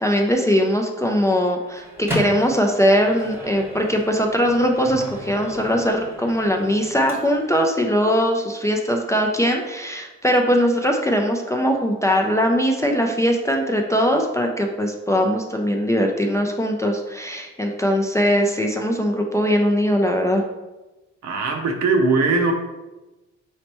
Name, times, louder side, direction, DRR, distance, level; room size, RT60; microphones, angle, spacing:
voice 1, 0.0-20.4, equal, 10° left, 1 dB, 0.4 m, -20 dB
Microwave oven, 1.6-7.6, equal, 10° right, 0.9 m, -35 dB
voice 2, 21.2-22.5, right 3 dB, 65° right, 3 dB, 0.8 m, -20 dB
4.1 x 3.2 x 2.9 m, 1.1 s
cardioid pair, 90°, 30 cm